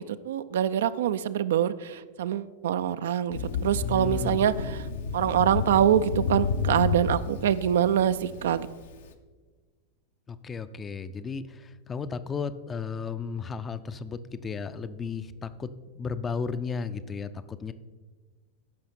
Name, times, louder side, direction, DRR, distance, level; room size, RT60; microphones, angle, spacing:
voice 1, 0.0-4.9 5.1-8.7, right 10 dB, 60° right, 13 dB, 0.3 m, -25 dB
Thunder, 3.3-9.0, left 5 dB, 60° left, 0.6 m, -31 dB
voice 2, 3.8-4.4 10.3-15.7 15.9-17.7, left 5 dB, 20° left, 13 dB, 0.4 m, -34 dB
14.5 x 5.6 x 4.3 m, 1.4 s
figure-of-eight pair, 90°, 0 cm